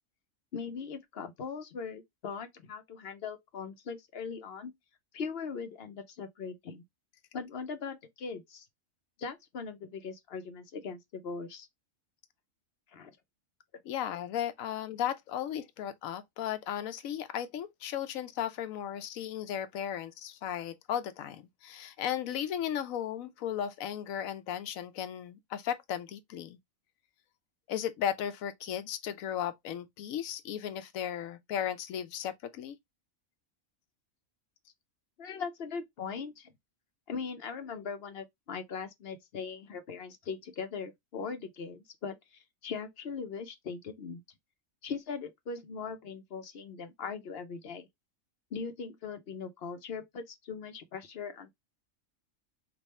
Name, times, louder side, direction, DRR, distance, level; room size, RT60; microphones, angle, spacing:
voice 1, 0.5-4.7 5.1-6.8 7.3-8.7 9.2-11.7 12.9-13.1 35.2-36.5 37.1-44.2 44.8-47.9 48.5-51.5, left 5 dB, 55° left, 0.8 m, -40 dB
voice 2, 13.9-26.6 27.7-32.8, left 10 dB, 85° left, 1.0 m, -35 dB
3.4 x 2.5 x 4.1 m
omnidirectional pair, 1.4 m